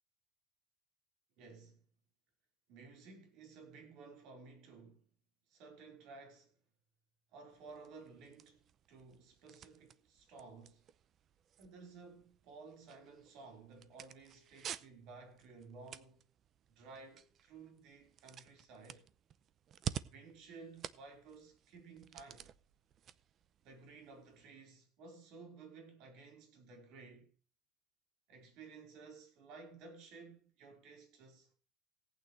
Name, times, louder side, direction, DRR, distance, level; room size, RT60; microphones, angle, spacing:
voice 1, 1.4-1.8 2.7-5.0 5.5-6.5 7.3-8.6 8.9-10.8 11.6-16.2 16.7-19.1 20.0-22.5 23.6-27.3 28.3-31.5, right 4 dB, 60° right, 4.5 m, -55 dB
sound 1, 7.5-24.5, right 9 dB, 35° right, 0.6 m, -51 dB
18.0 x 9.0 x 3.3 m
cardioid pair, 150°, 0 cm